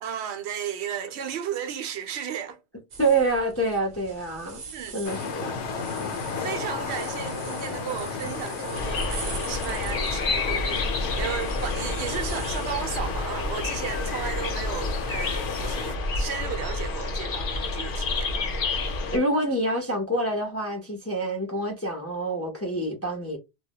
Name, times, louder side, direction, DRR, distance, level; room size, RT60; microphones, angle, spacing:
voice 1, 0.0-2.6 4.7-5.0 6.3-18.3, right 9 dB, 80° right, 0.8 m, -34 dB
sound 1, 2.9-12.8, right 4 dB, 50° right, 0.6 m, -43 dB
voice 2, 3.0-4.6 4.9-5.6 19.1-23.4, right 2 dB, 20° left, 0.5 m, -26 dB
sound 2, 5.0-16.0, left 5 dB, 90° left, 0.9 m, -34 dB
sound 3, 8.7-19.2, left 3 dB, 60° left, 0.7 m, -29 dB
2.2 x 2.0 x 2.8 m
omnidirectional pair, 1.1 m